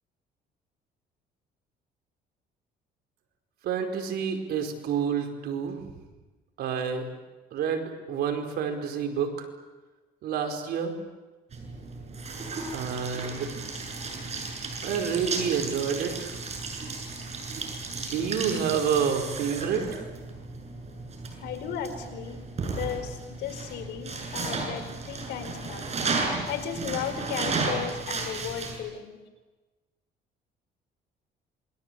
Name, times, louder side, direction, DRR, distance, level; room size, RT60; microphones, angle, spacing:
voice 1, 3.6-5.8 6.6-7.1 7.5-9.5 10.2-10.9 12.7-13.5 14.8-16.3 17.9-20.0, right 7 dB, 70° right, 5 dB, 4.9 m, -29 dB
sound 1, 11.5-28.8, right 3 dB, 40° right, 7.6 m, -34 dB
voice 2, 21.4-25.9 26.5-29.2, left 8 dB, 80° left, 6 dB, 4.8 m, -35 dB
27.5 x 23.0 x 8.3 m, 1.2 s
cardioid pair, 110°, 17 cm